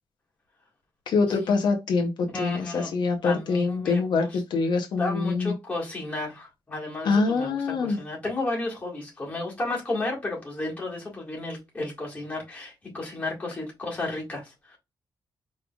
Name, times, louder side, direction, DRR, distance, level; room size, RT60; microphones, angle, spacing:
voice 1, 1.1-5.5 7.0-8.0, left 4 dB, 75° left, 0.9 m, -25 dB
voice 2, 2.3-2.9 3.2-4.4 5.0-14.8, left 2 dB, 20° left, 1.9 m, -33 dB
5.0 x 3.3 x 2.4 m
wide cardioid pair, 150°, 8 cm